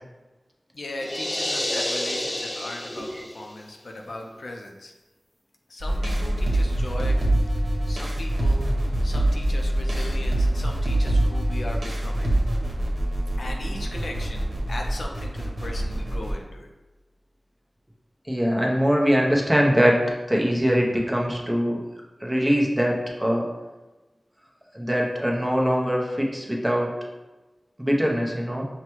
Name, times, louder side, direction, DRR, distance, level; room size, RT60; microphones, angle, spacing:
voice 1, 0.7-4.9 5.7-8.6 9.0-12.4 13.4-16.7, left 1 dB, 80° left, 1 dB, 0.5 m, -38 dB
sound 1, 1.0-3.5, left 1 dB, 20° left, 0.4 m, -29 dB
sound 2, 5.8-16.3, right 1 dB, 70° right, 0.9 m, -24 dB
voice 2, 18.3-21.8 22.2-23.5 24.7-27.0 27.8-28.7, equal, 10° right, -2 dB, 0.7 m, -22 dB
5.7 x 2.2 x 3.0 m, 1.1 s
wide cardioid pair, 75°, 0 cm